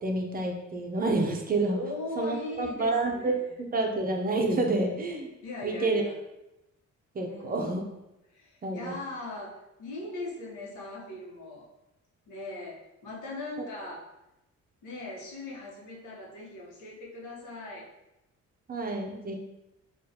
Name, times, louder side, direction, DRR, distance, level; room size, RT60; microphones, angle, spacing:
voice 1, 0.0-1.8 2.2-3.3 3.6-5.3 5.6-6.0 7.1-7.8 8.6-9.0 18.7-19.4, right 2 dB, 30° right, 2 dB, 0.5 m, -28 dB
voice 2, 1.7-3.5 5.4-6.2 7.3-7.7 8.3-11.7 12.3-14.1 14.8-17.9, left 2 dB, 80° left, -4 dB, 1.0 m, -40 dB
3.6 x 2.4 x 2.7 m, 0.93 s
cardioid pair, 105°, 30 cm